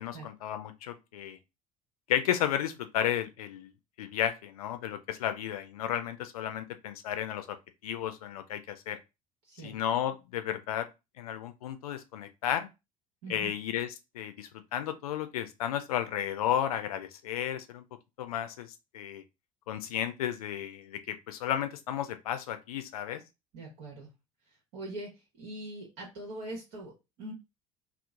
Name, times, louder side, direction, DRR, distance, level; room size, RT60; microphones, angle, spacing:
voice 1, 0.0-1.4 2.1-3.7 4.0-7.6 7.8-9.0 9.6-10.9 11.2-12.7 13.3-17.8 18.2-19.2 19.7-23.2, left 10 dB, 80° left, 0.4 m, -33 dB
voice 2, 9.4-9.8 13.2-13.5 23.5-24.1 24.7-25.1 25.4-26.9 27.2-27.3, right 1 dB, 65° right, 1.0 m, -42 dB
2.9 x 2.0 x 3.5 m
figure-of-eight pair, 60°, 19 cm